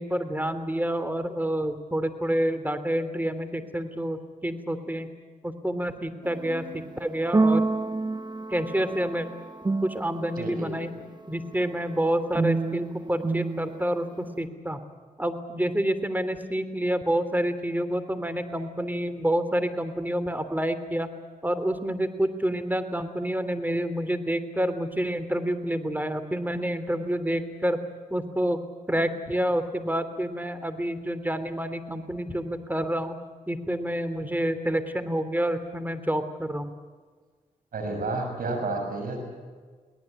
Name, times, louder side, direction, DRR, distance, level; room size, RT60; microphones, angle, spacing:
voice 1, 0.0-5.1 5.4-7.6 8.5-9.3 9.6-10.9 11.3-14.8 15.2-21.1 21.4-27.8 28.1-28.6 28.9-33.2 33.5-36.7, right 1 dB, 10° right, 11 dB, 3.1 m, -28 dB
sound 1, 6.2-10.6 12.4-14.5, right 3 dB, 30° right, 1.2 m, -29 dB
voice 2, 10.4-10.7 37.7-39.2, right 2 dB, 85° right, 3 dB, 6.8 m, -30 dB
23.0 x 18.5 x 9.0 m, 1.5 s
cardioid pair, 50°, 14 cm